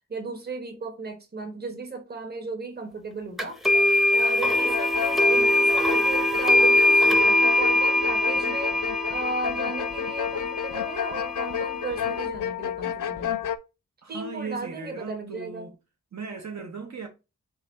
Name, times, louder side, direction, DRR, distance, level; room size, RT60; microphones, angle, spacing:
voice 1, 0.1-8.8 9.1-13.5 14.1-15.7, right 2 dB, 30° right, 1.0 m, -35 dB
sound 1, 3.4-12.2, left 1 dB, ahead, 0.7 m, -22 dB
sound 2, 3.7-3.9 4.2-13.6, left 9 dB, 70° left, 0.5 m, -32 dB
voice 2, 14.0-15.8 16.1-17.1, right 5 dB, 60° right, 0.7 m, -37 dB
4.0 x 3.2 x 3.9 m
wide cardioid pair, 115°, 32 cm